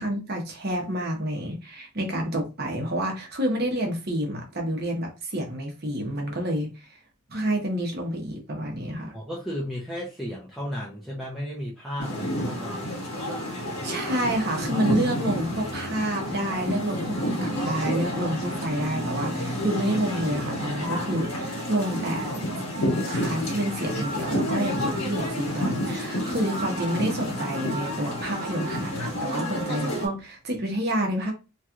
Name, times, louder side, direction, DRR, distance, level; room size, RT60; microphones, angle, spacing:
voice 1, 0.0-7.0 7.3-9.1 13.8-22.3 23.0-31.3, right 1 dB, 45° right, 1.0 m, -29 dB
voice 2, 9.1-13.1, equal, ahead, 0.6 m, -34 dB
sound 1, 12.0-30.1, equal, 70° left, 1.4 m, -30 dB
3.1 x 2.9 x 2.4 m
head